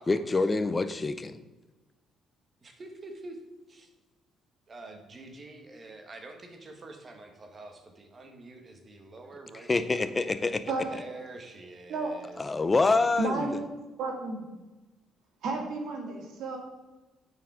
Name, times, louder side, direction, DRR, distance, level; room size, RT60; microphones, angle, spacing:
voice 1, 0.1-1.4 9.5-10.6 12.4-13.6, left 3 dB, 20° left, 12 dB, 0.5 m, -26 dB
voice 2, 2.6-3.4 3.7-3.9 4.7-10.5 10.9-12.6, right 2 dB, 30° right, 4 dB, 1.3 m, -47 dB
voice 3, 10.7-11.0 11.9-12.1 13.2-13.7 14.0-14.4 15.4-16.6, right 3 dB, 75° right, 0 dB, 2.0 m, -32 dB
9.1 x 4.8 x 4.9 m, 1.2 s
cardioid pair, 110°, 0 cm